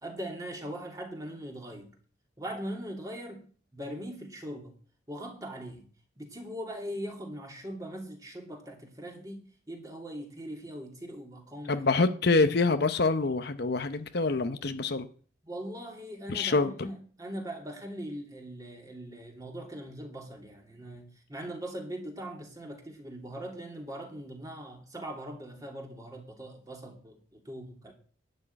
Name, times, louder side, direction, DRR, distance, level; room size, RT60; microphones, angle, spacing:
voice 1, 0.0-1.9 2.4-3.5 3.7-4.7 5.1-5.9 6.2-11.8 15.5-27.9, right 1 dB, 20° right, 2.8 m, -41 dB
voice 2, 11.7-15.1 16.3-16.9, left 3 dB, 55° left, 0.8 m, -26 dB
11.5 x 6.5 x 8.8 m
head